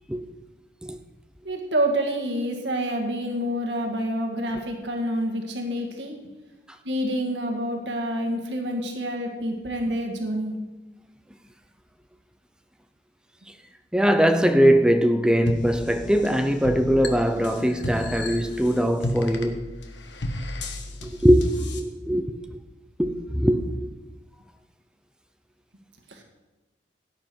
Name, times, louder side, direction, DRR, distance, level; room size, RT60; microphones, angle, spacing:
voice 1, 1.4-6.2 6.8-10.6 26.1-26.2, equal, 75° right, 2.0 m, -27 dB
voice 2, 13.9-19.6 21.0-22.4 23.0-23.6, equal, 5° right, 0.7 m, -21 dB
sound 1, 15.5-21.8, left 1 dB, 75° left, 1.5 m, -33 dB
16.5 x 10.0 x 4.6 m
head